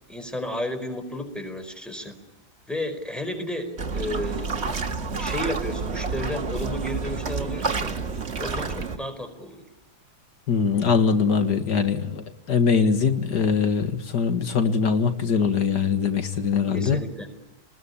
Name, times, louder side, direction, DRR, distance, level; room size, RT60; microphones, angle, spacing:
voice 1, 0.1-2.2 2.7-4.5 5.2-8.0 8.4-9.6 16.7-17.3, left 1 dB, ahead, 6 dB, 4.7 m, -32 dB
sound 1, 3.8-9.0, right 4 dB, 40° right, 1.9 m, -29 dB
voice 2, 10.5-17.0, left 5 dB, 80° left, 8 dB, 2.3 m, -22 dB
27.5 x 20.0 x 10.0 m, 0.86 s
omnidirectional pair, 1.8 m